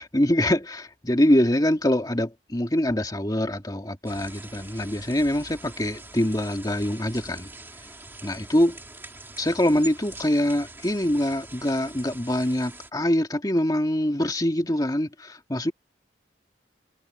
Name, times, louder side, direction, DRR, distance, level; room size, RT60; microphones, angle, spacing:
voice 1, 0.0-7.5 8.2-8.8 9.4-15.7, left 1 dB, 20° left, 2.1 m, -24 dB
sound 1, 4.1-12.9, right 2 dB, 15° right, 2.4 m, -44 dB
head